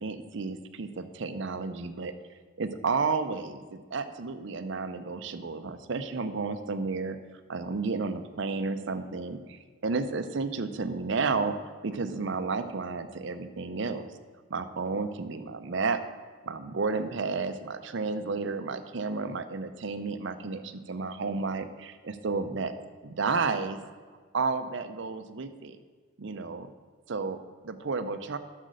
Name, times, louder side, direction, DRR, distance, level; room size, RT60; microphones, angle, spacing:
voice 1, 0.0-2.1 2.6-7.2 7.5-14.1 14.5-16.0 16.4-22.7 23.0-23.8 24.3-25.8 26.2-26.7 27.1-28.4, right 4 dB, 60° right, 10 dB, 0.6 m, -32 dB
8.0 x 6.5 x 6.4 m, 1.5 s
head